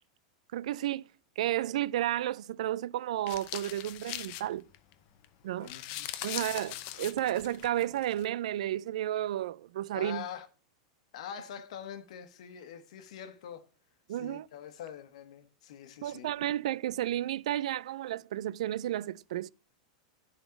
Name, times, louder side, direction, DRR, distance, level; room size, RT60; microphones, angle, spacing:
voice 1, 0.5-1.0 1.4-4.7 5.4-5.7 6.2-10.2 14.1-14.4 16.0-19.5, right 13 dB, 75° right, 0.4 m, -32 dB
sound 1, 3.3-4.9 5.2-5.3 5.5-8.2, left 14 dB, 50° left, 0.8 m, -40 dB
voice 2, 5.6-6.5 9.9-10.5 11.1-13.7 14.1-16.3, left 9 dB, 70° left, 1.3 m, -44 dB
10.5 x 4.1 x 5.8 m
supercardioid pair, 135°, 4 cm